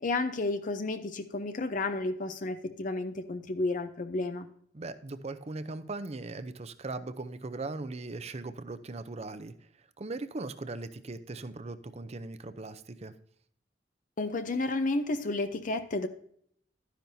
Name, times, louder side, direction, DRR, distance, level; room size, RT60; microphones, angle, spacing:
voice 1, 0.0-4.5 14.2-16.1, left 2 dB, 45° left, 9 dB, 0.6 m, -31 dB
voice 2, 4.7-9.5 10.0-13.1, right 3 dB, 35° right, 11 dB, 0.6 m, -39 dB
12.0 x 10.0 x 2.7 m, 0.65 s
head